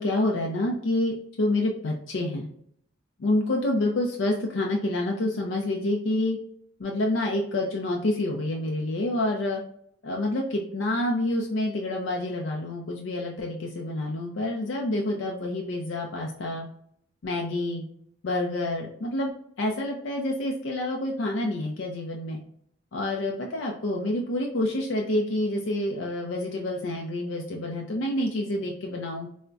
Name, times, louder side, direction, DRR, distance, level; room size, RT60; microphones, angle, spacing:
voice 1, 0.0-2.5 3.2-6.4 6.8-9.6 10.0-16.7 17.2-17.8 18.2-19.3 19.6-22.4 22.9-29.3, left 1 dB, 80° left, 0 dB, 0.5 m, -28 dB
4.4 x 2.1 x 2.5 m, 0.68 s
head